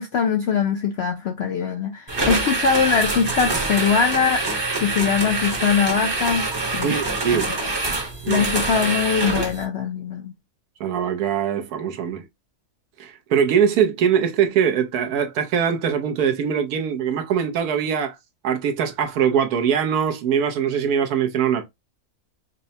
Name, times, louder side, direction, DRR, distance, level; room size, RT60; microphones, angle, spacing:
voice 1, 0.0-4.4 4.8-6.9 7.3-7.4 8.3-10.3, left 6 dB, 65° left, 0.6 m, -22 dB
sound 1, 2.1-9.6, right 2 dB, 20° right, 0.7 m, -25 dB
voice 2, 6.8-7.5 8.2-8.5 10.8-12.3 13.0-18.2 18.4-21.6, right 7 dB, 75° right, 1.2 m, -22 dB
5.2 x 2.0 x 2.7 m
omnidirectional pair, 1.6 m